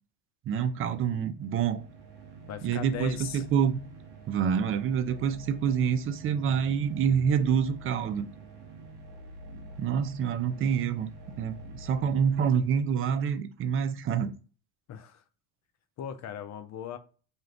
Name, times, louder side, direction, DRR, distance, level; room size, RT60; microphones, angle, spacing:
voice 1, 0.5-1.8 2.6-3.8 4.3-8.3 9.8-11.1 11.4-14.3, right 7 dB, 30° right, 0.4 m, -27 dB
sound 1, 1.3-13.2, right 1 dB, 55° right, 1.1 m, -47 dB
voice 2, 2.5-3.4 14.9-15.2 16.0-17.0, left 9 dB, 35° left, 0.5 m, -38 dB
2.7 x 2.3 x 3.3 m
hypercardioid pair, 80°, 48 cm